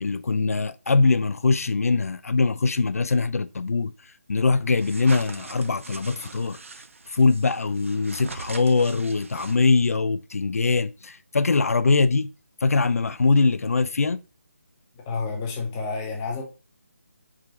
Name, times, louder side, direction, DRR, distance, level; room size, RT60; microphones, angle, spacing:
voice 1, 0.0-3.9 4.3-6.6 7.1-12.3 12.6-14.2, left 4 dB, 70° left, 0.4 m, -22 dB
sound 1, 4.8-9.9, right 4 dB, 55° right, 0.6 m, -41 dB
voice 2, 15.1-16.4, left 4 dB, 10° left, 0.6 m, -29 dB
4.8 x 2.4 x 4.1 m
figure-of-eight pair, 175°, 8 cm